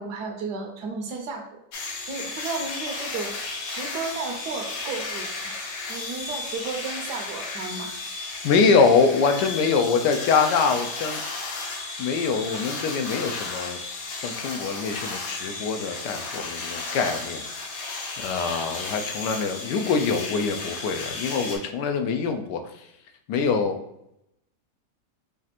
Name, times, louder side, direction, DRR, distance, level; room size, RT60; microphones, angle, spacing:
voice 1, 0.0-1.6 2.1-3.3 3.7-5.6 5.9-7.9, right 4 dB, 75° right, 3 dB, 1.3 m, -33 dB
sound 1, 1.7-21.6, left 3 dB, 65° left, 1.1 m, -34 dB
voice 2, 8.4-11.2 12.0-13.8 14.2-17.4 18.2-22.7 23.3-23.8, left 5 dB, 85° left, 6 dB, 1.2 m, -24 dB
5.2 x 2.4 x 2.8 m, 0.79 s
omnidirectional pair, 1.8 m